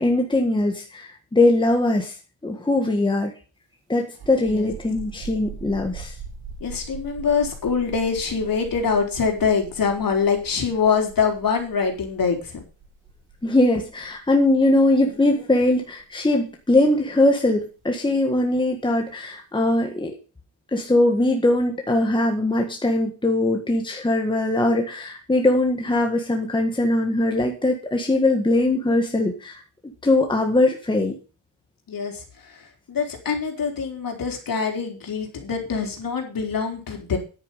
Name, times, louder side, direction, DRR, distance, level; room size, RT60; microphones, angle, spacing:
voice 1, 0.0-2.1 2.4-3.3 3.9-6.1 13.4-20.1 20.7-29.6 30.0-31.1, left 2 dB, 10° left, 2 dB, 1.7 m, -21 dB
sound 1, 4.1-17.5, right 5 dB, 80° right, 3.8 m, -41 dB
voice 2, 6.6-12.5 31.9-32.2 32.9-37.2, left 6 dB, 45° left, 3 dB, 4.0 m, -24 dB
10.0 x 9.0 x 5.6 m, 0.34 s
cardioid pair, 135°, 48 cm